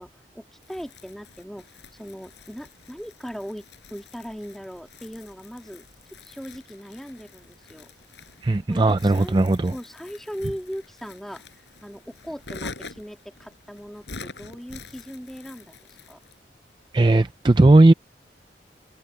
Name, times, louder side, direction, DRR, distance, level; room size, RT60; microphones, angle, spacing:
voice 1, 0.0-1.7 1.9-5.8 6.2-7.9 8.7-9.5 9.7-11.4 11.8-16.2, equal, ahead, 2.5 m, -39 dB
Crumpling crinkling, 0.6-16.4, left 3 dB, 85° left, 6.3 m, -46 dB
voice 2, 8.4-9.7 16.9-17.9, right 2 dB, 25° right, 0.4 m, -17 dB
open air
head